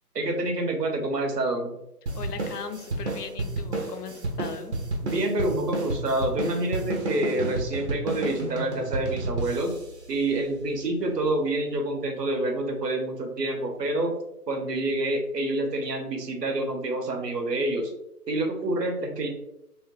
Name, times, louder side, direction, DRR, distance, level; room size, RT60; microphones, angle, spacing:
voice 1, 0.1-1.8 5.0-9.7 10.1-14.1 14.5-17.9 18.3-19.3, right 2 dB, 90° right, 3 dB, 0.9 m, -27 dB
voice 2, 2.1-4.7, left 6 dB, 80° left, 9 dB, 0.6 m, -38 dB
sound 1, 2.1-10.9, right 2 dB, 45° right, 0.6 m, -32 dB
3.0 x 2.1 x 2.9 m, 0.84 s
figure-of-eight pair, 155°, 47 cm